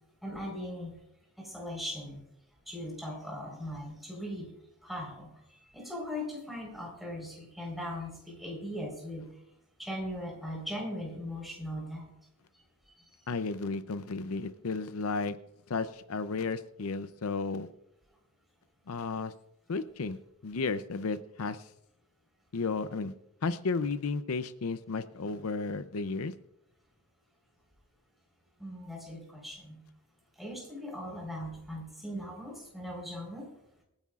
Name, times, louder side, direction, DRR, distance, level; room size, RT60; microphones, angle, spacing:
voice 1, 0.2-0.9 1.4-2.2 2.7-4.5 4.8-5.3 5.7-9.3 9.8-12.1 28.6-29.8 30.4-33.5, equal, ahead, -2 dB, 4.3 m, -39 dB
voice 2, 13.3-15.4 15.7-17.7 18.9-19.3 19.7-20.2 20.4-21.7 22.5-23.1 23.4-26.3, left 4 dB, 75° left, 12 dB, 0.6 m, -33 dB
27.0 x 9.7 x 2.4 m, 0.81 s
head